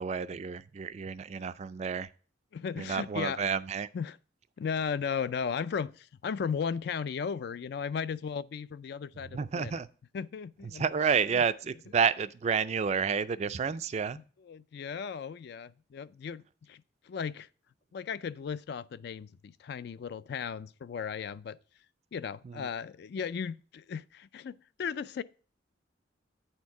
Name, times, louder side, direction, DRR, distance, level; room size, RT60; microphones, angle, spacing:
voice 1, 0.0-2.1 2.8-3.9 9.3-9.9 10.6-14.2 22.4-22.7, right 6 dB, 35° right, 0.3 m, -30 dB
voice 2, 2.5-3.4 3.9-4.2 4.6-9.7 10.1-10.8 11.3-11.4 14.5-17.5 17.9-21.6 22.1-25.2, left 6 dB, 55° left, 0.3 m, -36 dB
9.0 x 4.4 x 4.7 m
head